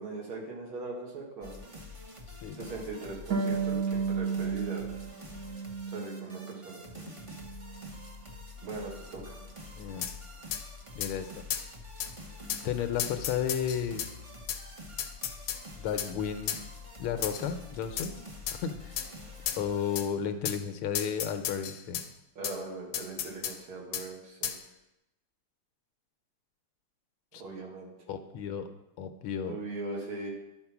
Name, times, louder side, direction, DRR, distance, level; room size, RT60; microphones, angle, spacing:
voice 1, 0.0-1.6 2.6-4.8 5.9-7.1 8.6-9.4 22.4-24.6 27.3-27.9 29.4-30.3, right 3 dB, 75° right, -2 dB, 2.7 m, -40 dB
sound 1, 1.4-20.0, left 2 dB, 35° right, 0.5 m, -47 dB
Harp, 3.3-6.7 7.0-8.1, right 6 dB, 60° right, 1.0 m, -33 dB
voice 2, 9.7-10.1 10.9-11.3 12.6-14.1 15.8-16.6 17.0-18.1 18.5-19.0 19.6-22.0 27.3-27.4 28.1-28.7 29.0-29.6, left 8 dB, 85° left, 7 dB, 1.6 m, -33 dB
sound 2, 10.0-10.2 10.5-10.6 11.0-11.1 11.5-11.7 12.0-12.1 12.5-12.6 13.0-14.1 14.5-14.6 15.0-15.6 16.0-16.1 16.5-16.6 17.2-17.5 18.0-18.1 18.5-18.6 19.0-19.1 19.5-19.6 20.0-20.1 20.4-20.6 20.9-22.1 22.4-22.6 22.9-23.6 23.9-24.1 24.4-24.6, left 9 dB, 70° left, 1.2 m, -34 dB
11.5 x 4.4 x 5.9 m, 0.93 s
omnidirectional pair, 2.3 m